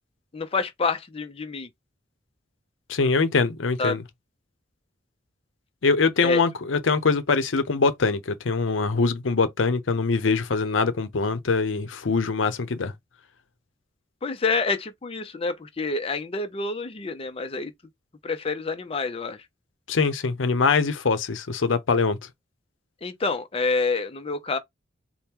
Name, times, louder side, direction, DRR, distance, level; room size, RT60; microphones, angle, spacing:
voice 1, 0.3-1.7 3.8-4.0 6.2-6.4 14.2-17.7 18.2-19.4 23.0-24.6, left 4 dB, 30° left, 0.5 m, -27 dB
voice 2, 2.9-4.0 5.8-12.9 19.9-22.2, left 4 dB, 85° left, 0.7 m, -23 dB
4.3 x 2.1 x 3.5 m
head